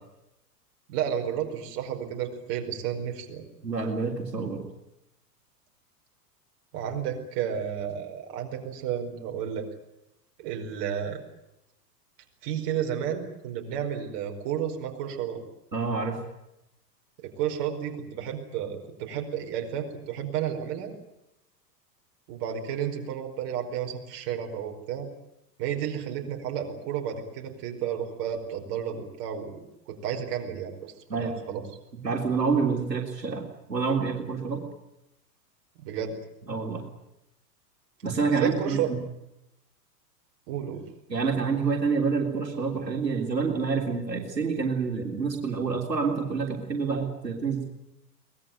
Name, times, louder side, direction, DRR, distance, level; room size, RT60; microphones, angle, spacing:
voice 1, 0.9-3.4 6.7-9.7 10.4-11.2 12.4-15.4 17.2-20.9 22.3-25.1 25.6-29.5 29.9-30.9 31.2-31.6 35.8-36.1 38.4-38.9 40.5-40.8, right 9 dB, 45° right, 2 dB, 5.0 m, -32 dB
voice 2, 3.6-4.6 15.7-16.2 31.1-31.6 32.0-34.6 36.4-36.9 38.0-39.0 41.1-47.6, right 5 dB, 80° right, 1 dB, 3.6 m, -28 dB
23.5 x 20.0 x 9.3 m, 0.87 s
figure-of-eight pair, 95°, 49 cm